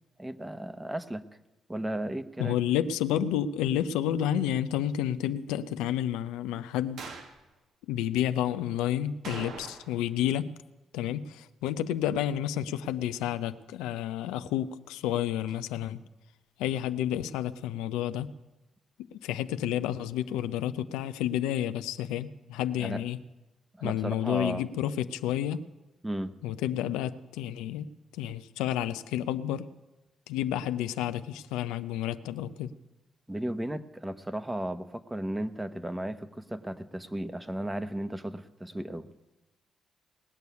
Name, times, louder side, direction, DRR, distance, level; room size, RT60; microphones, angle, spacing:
voice 1, 0.2-1.2 1.7-2.6 22.8-23.0 23.8-24.7 26.0-26.4 33.3-39.1, right 1 dB, 15° right, 11 dB, 1.0 m, -35 dB
voice 2, 2.4-7.1 7.9-10.5 10.9-16.0 16.6-18.3 19.1-23.2 23.8-25.6 26.4-27.9 28.1-29.7 30.3-32.7, left 11 dB, 90° left, 11 dB, 0.5 m, -30 dB
sound 1, 7.0-7.4 9.2-10.1 10.4-10.5 15.5-15.6, right 4 dB, 75° right, 1.9 m, -42 dB
19.0 x 6.9 x 9.4 m, 1.1 s
supercardioid pair, 55°, 0 cm